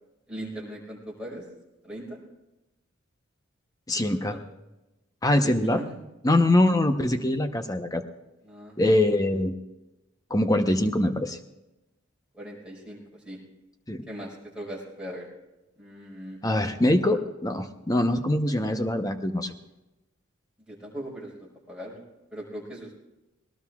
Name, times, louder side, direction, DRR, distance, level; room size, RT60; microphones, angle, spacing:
voice 1, 0.3-1.4 1.8-2.2 3.9-4.4 5.4-6.0 6.7-6.8 8.4-8.7 12.3-13.4 14.1-15.3 15.8-16.4 20.7-22.0 22.3-23.0, right 1 dB, 5° right, -5 dB, 5.0 m, -39 dB
voice 2, 3.9-4.4 5.2-5.8 6.2-8.0 8.8-9.5 10.3-11.4 13.9-14.0 16.4-19.5, left 1 dB, 15° left, 7 dB, 0.8 m, -23 dB
20.5 x 19.0 x 2.4 m, 0.99 s
head